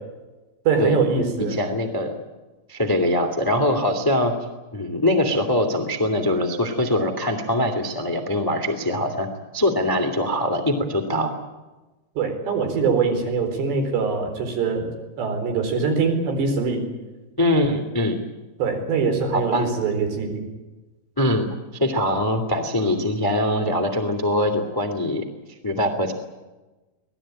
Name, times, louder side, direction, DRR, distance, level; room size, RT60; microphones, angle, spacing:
voice 1, 0.7-1.6 12.2-14.9 15.2-16.8 18.6-20.5, right 5 dB, 70° right, 4 dB, 6.4 m, -23 dB
voice 2, 1.5-2.1 2.7-4.3 4.7-9.3 9.5-11.3 17.4-18.2 19.3-19.7 21.2-21.5 21.8-25.2 25.6-26.1, left 1 dB, 10° left, 6 dB, 0.9 m, -22 dB
25.5 x 19.0 x 9.0 m, 1.2 s
omnidirectional pair, 5.1 m